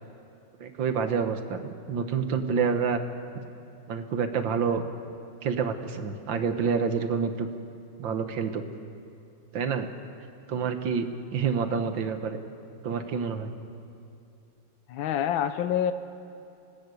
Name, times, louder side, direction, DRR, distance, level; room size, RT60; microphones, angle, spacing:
voice 1, 0.6-3.0 3.9-4.8 5.4-7.5 8.0-8.6 9.5-9.9 10.5-11.1 11.3-12.4 12.8-13.5, right 6 dB, 75° right, 7 dB, 2.0 m, -28 dB
voice 2, 14.9-15.9, left 9 dB, 90° left, 11 dB, 1.6 m, -26 dB
25.5 x 18.5 x 8.4 m, 2.7 s
omnidirectional pair, 2.1 m